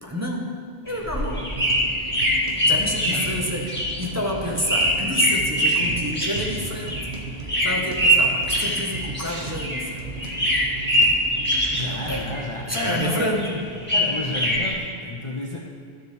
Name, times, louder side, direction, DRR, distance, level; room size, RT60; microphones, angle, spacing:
voice 1, 0.0-0.6 0.8-1.6 2.7-7.0 7.4-10.1 11.8-12.3 12.7-13.6, equal, 15° right, -2 dB, 0.8 m, -29 dB
sound 1, 0.9-9.9 10.2-12.4 12.7-14.7, equal, 10° left, 1.8 m, -23 dB
sound 2, 1.2-12.6, right 3 dB, 60° right, 1.1 m, -36 dB
voice 2, 5.8-6.3 11.7-13.4 13.9-15.6, left 2 dB, 35° left, -2 dB, 0.6 m, -31 dB
12.5 x 6.9 x 3.3 m, 2.3 s
omnidirectional pair, 1.1 m